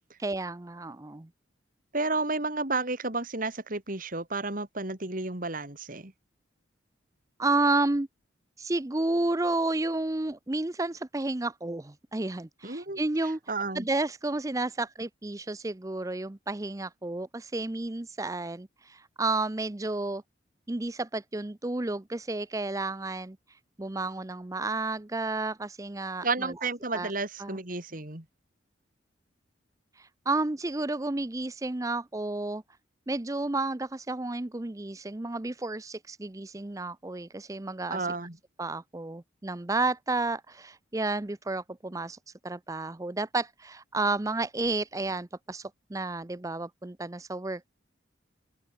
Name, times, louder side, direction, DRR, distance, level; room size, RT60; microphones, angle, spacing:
voice 1, 0.2-1.3 7.4-8.1 8.6-13.4 13.7-20.2 20.7-23.4 23.8-26.5 26.9-27.1 27.4-27.6 30.0-32.6 33.1-38.0 38.6-42.2 42.4-47.7, right 2 dB, 15° right, 0.6 m, -31 dB
voice 2, 1.9-6.1 12.6-13.9 26.2-28.2 37.9-38.4, right 3 dB, 45° right, 2.9 m, -32 dB
head